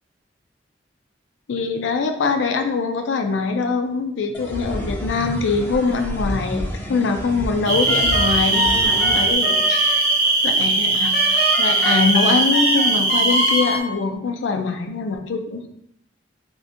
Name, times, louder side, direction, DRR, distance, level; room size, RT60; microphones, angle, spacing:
voice 1, 1.5-6.6 6.9-10.0 10.4-15.7, left 4 dB, 85° left, 6 dB, 0.4 m, -23 dB
sound 1, 4.3-9.3, equal, 10° left, 0.4 m, -29 dB
sound 2, 7.7-13.6, right 2 dB, 55° right, 0.7 m, -19 dB
sound 3, 7.9-10.3 11.1-13.8, equal, 65° left, 0.9 m, -25 dB
3.6 x 2.6 x 2.6 m, 0.76 s
head